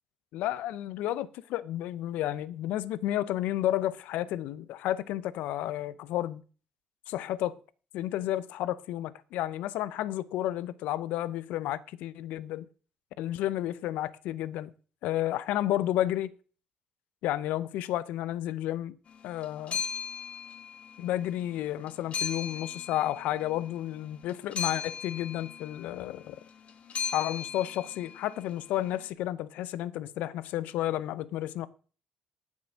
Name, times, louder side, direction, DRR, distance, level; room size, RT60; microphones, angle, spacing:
voice 1, 0.3-6.4 7.1-7.6 7.9-12.7 13.2-14.7 15.0-16.3 17.2-18.9 19.2-19.8 21.0-26.4 27.1-31.7, left 13 dB, 80° left, 0.6 m, -31 dB
sound 1, 19.1-29.0, left 7 dB, 55° left, 1.5 m, -38 dB
9.4 x 7.4 x 6.4 m
supercardioid pair, 65°, 3 cm